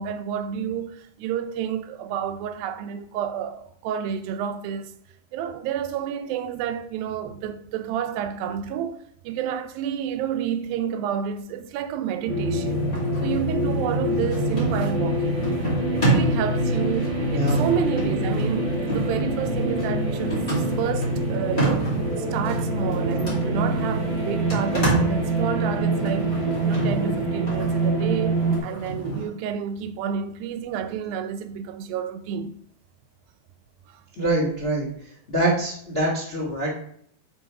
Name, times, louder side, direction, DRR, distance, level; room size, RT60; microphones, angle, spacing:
voice 1, 0.0-4.9 5.3-12.9 13.2-15.4 15.9-32.5 33.9-34.0, right 8 dB, 85° right, 2.4 m, -30 dB
sound 1, 12.3-28.6, right 1 dB, 45° right, 1.6 m, -25 dB
sound 2, 12.6-29.2, right 2 dB, 20° left, 1.6 m, -30 dB
voice 2, 34.2-34.9 35.3-36.7, right 2 dB, 85° left, 0.5 m, -24 dB
6.7 x 3.9 x 4.7 m
omnidirectional pair, 4.1 m